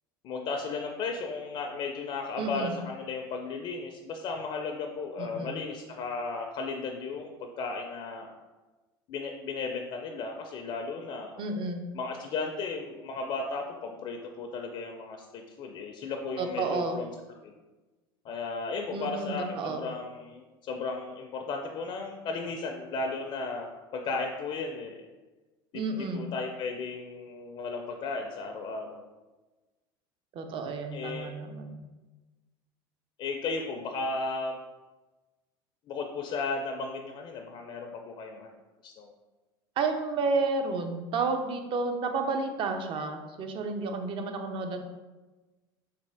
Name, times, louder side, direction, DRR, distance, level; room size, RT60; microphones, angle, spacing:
voice 1, 0.2-8.3 9.1-11.4 11.9-17.1 17.4-17.5 18.2-25.1 25.7-29.1 30.9-31.3 33.2-34.6 35.9-38.5 38.8-39.1, left 4 dB, 45° left, 2 dB, 0.4 m, -35 dB
voice 2, 2.3-2.8 5.2-5.6 11.4-11.8 16.4-17.0 18.9-19.8 25.7-26.3 30.3-31.8 39.8-44.8, right 3 dB, 45° right, 5 dB, 0.5 m, -31 dB
3.4 x 2.4 x 3.3 m, 1.2 s
hypercardioid pair, 90°, 12 cm